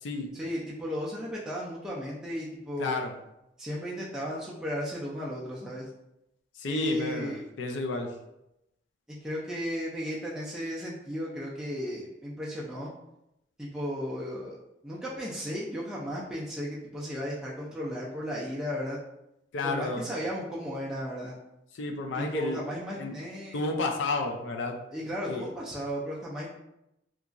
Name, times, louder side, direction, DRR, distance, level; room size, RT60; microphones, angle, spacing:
voice 1, 0.4-3.0 3.6-5.9 6.7-7.4 9.2-12.9 13.6-14.6 14.8-19.0 19.6-21.4 22.2-23.6 24.9-26.5, equal, 5° right, -7 dB, 0.3 m, -35 dB
voice 2, 2.8-3.1 6.6-8.1 19.5-20.1 21.7-22.7 23.0-23.1 23.5-24.8 25.3-25.4, left 3 dB, 75° left, 3 dB, 0.4 m, -31 dB
2.8 x 2.4 x 2.4 m, 0.86 s
head